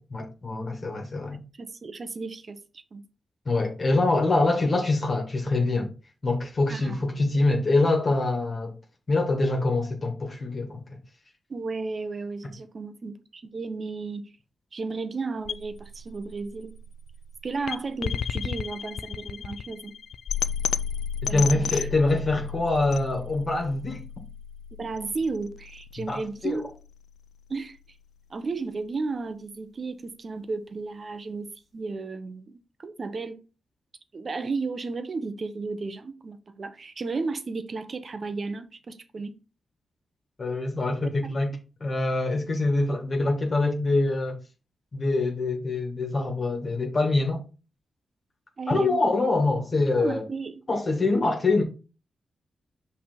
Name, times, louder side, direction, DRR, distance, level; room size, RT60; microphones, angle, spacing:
voice 1, 0.1-1.4 3.5-5.9 6.2-8.7 9.1-10.8 21.3-24.0 26.1-26.6 40.4-41.5 41.8-44.4 44.9-47.4 48.7-50.2 50.7-51.6, left 2 dB, 40° left, 1.8 m, -24 dB
voice 2, 1.6-2.6 2.9-3.0 6.7-7.3 11.5-14.3 14.7-16.7 17.4-20.0 21.3-21.9 24.8-26.7 27.5-27.8 28.3-33.4 34.1-39.3 41.0-41.4 48.6-49.2 49.7-50.6, right 4 dB, 50° right, 0.8 m, -34 dB
sound 1, 15.5-27.5, left 7 dB, 85° left, 0.3 m, -33 dB
5.8 x 3.5 x 5.1 m
cardioid pair, 80°, 0 cm